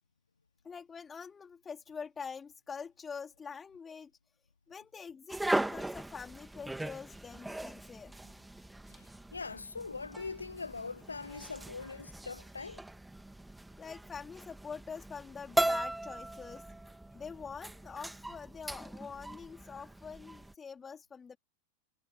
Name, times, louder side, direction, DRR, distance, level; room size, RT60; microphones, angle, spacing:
voice 1, 0.6-4.1 4.7-8.1 13.8-16.6 17.1-21.4, left 6 dB, 15° left, 4.0 m, -45 dB
sound 1, 5.3-20.5, right 1 dB, 5° right, 2.2 m, -39 dB
voice 2, 8.9-12.8, left 4 dB, 75° left, 1.0 m, -42 dB
figure-of-eight pair, 90°, 0 cm